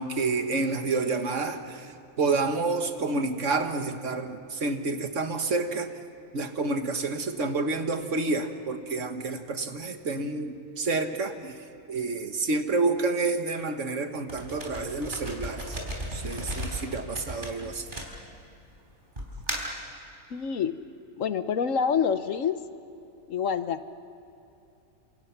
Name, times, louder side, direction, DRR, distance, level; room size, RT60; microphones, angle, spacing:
voice 1, 0.0-5.9 6.3-15.8 16.1-17.9, right 3 dB, 60° right, 7 dB, 1.7 m, -29 dB
sound 1, 14.3-18.6 19.2-19.8, equal, 35° right, 4.2 m, -35 dB
voice 2, 20.3-20.7 21.2-22.6 23.3-23.9, left 7 dB, 65° left, 11 dB, 1.2 m, -27 dB
28.5 x 27.0 x 5.9 m, 2.7 s
omnidirectional pair, 1.5 m